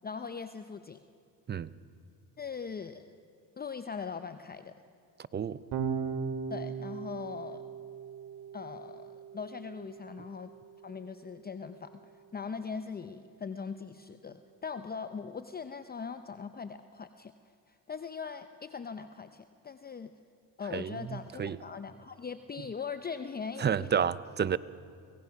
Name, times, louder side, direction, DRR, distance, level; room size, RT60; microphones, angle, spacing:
voice 1, 0.0-1.0 2.4-3.1 3.6-4.7 6.5-7.6 8.5-10.5 10.8-17.3 17.7-20.1 20.6-23.9, left 5 dB, 25° left, 10 dB, 0.7 m, -40 dB
voice 2, 5.3-5.6 20.7-21.6 23.6-24.6, right 7 dB, 25° right, 18 dB, 0.5 m, -30 dB
Electric guitar / Bass guitar, 5.7-12.1, right 6 dB, 80° right, 2.3 m, -39 dB
25.0 x 17.5 x 5.9 m, 2.3 s
supercardioid pair, 80°, 38 cm